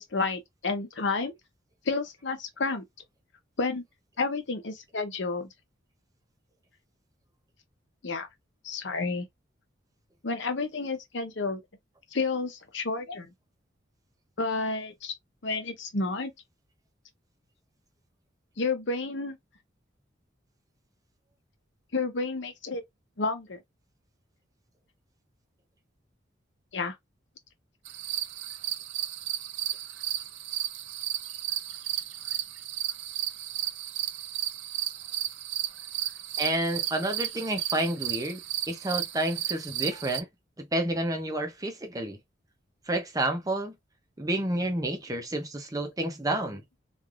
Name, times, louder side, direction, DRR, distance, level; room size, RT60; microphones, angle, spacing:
voice 1, 0.0-1.3 1.9-2.8 3.6-3.8 4.2-5.5 8.0-8.3 8.6-9.3 10.2-11.6 12.1-13.3 14.4-15.1 15.4-16.3 18.6-19.4 21.9-22.8 23.2-23.6 26.7-27.0, left 3 dB, 75° left, 0.8 m, -30 dB
sound 1, 27.8-40.2, right 12 dB, 75° right, 0.4 m, -34 dB
voice 2, 36.4-38.4 38.7-40.3 40.7-42.2 42.9-43.7 44.2-46.6, right 1 dB, 20° right, 0.7 m, -29 dB
3.2 x 2.5 x 2.4 m
head